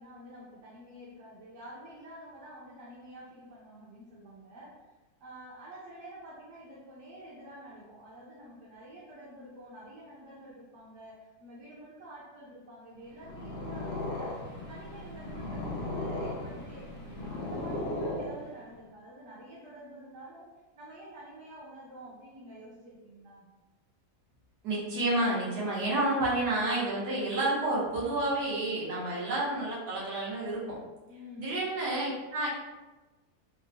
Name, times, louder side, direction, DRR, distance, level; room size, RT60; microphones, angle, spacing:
voice 1, 0.0-4.7 5.2-14.4 14.7-23.5 31.1-31.5, right 1 dB, 60° right, -9 dB, 1.0 m, -49 dB
Purr, 13.1-18.8, left 1 dB, 65° left, 0.6 m, -36 dB
voice 2, 24.6-30.8 31.4-32.5, right 2 dB, 85° right, -7 dB, 1.4 m, -30 dB
3.6 x 2.1 x 2.7 m, 1.1 s
omnidirectional pair, 1.7 m